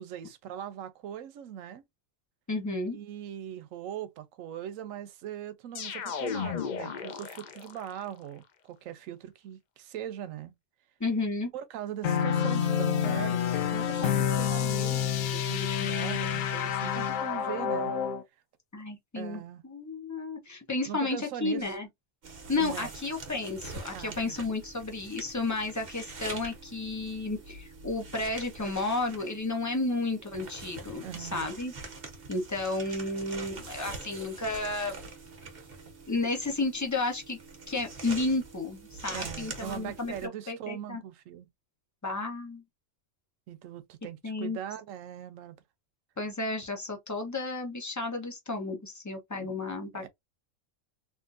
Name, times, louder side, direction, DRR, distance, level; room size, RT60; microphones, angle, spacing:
voice 1, 0.0-1.8 2.9-10.5 11.5-17.9 19.2-19.6 20.9-21.8 22.6-22.9 23.9-24.3 31.0-31.6 39.1-41.5 43.5-45.6 49.4-49.5 49.9-50.1, right 10 dB, 85° right, 1.0 m, -40 dB
voice 2, 2.5-3.0 11.0-11.5 18.7-21.9 22.5-31.7 32.3-35.0 36.1-37.4 37.7-41.0 42.0-42.6 44.2-44.6 46.2-50.1, left 3 dB, 20° left, 0.6 m, -32 dB
sound 1, 5.7-8.0, left 6 dB, 65° left, 0.4 m, -35 dB
sound 2, 12.0-18.2, left 8 dB, 85° left, 1.0 m, -28 dB
sound 3, 22.2-40.3, right 3 dB, 50° right, 1.2 m, -44 dB
3.6 x 2.6 x 2.4 m
omnidirectional pair, 1.3 m